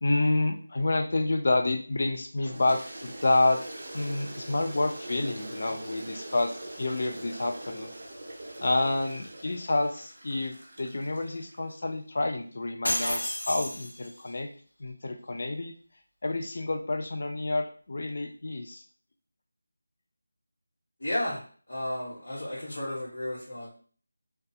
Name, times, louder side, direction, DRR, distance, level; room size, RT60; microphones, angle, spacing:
voice 1, 0.0-3.6 3.9-7.9 8.6-14.5 14.8-15.7 16.2-18.8, left 2 dB, 40° left, 5 dB, 0.4 m, -28 dB
Toilet flush, 2.4-11.8, right 1 dB, 35° right, 0.5 m, -43 dB
sound 1, 12.8-14.3, left 1 dB, 85° left, 0.7 m, -31 dB
voice 2, 21.0-23.7, left 1 dB, 65° left, -7 dB, 1.0 m, -33 dB
2.3 x 2.2 x 2.7 m, 0.43 s
figure-of-eight pair, 175°, 0 cm